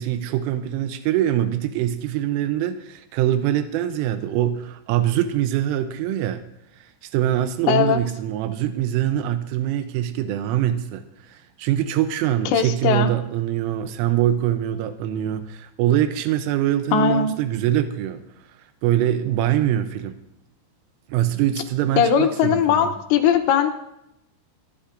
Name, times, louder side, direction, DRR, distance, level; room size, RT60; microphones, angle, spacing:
voice 1, 0.0-6.4 6.8-18.2 18.8-20.2 21.1-22.9, right 11 dB, 90° right, 9 dB, 3.3 m, -23 dB
voice 2, 7.7-8.0 12.5-13.1 16.9-17.4 22.0-23.7, left 7 dB, 75° left, 6 dB, 2.8 m, -19 dB
29.5 x 10.0 x 2.6 m, 0.84 s
omnidirectional pair, 5.6 m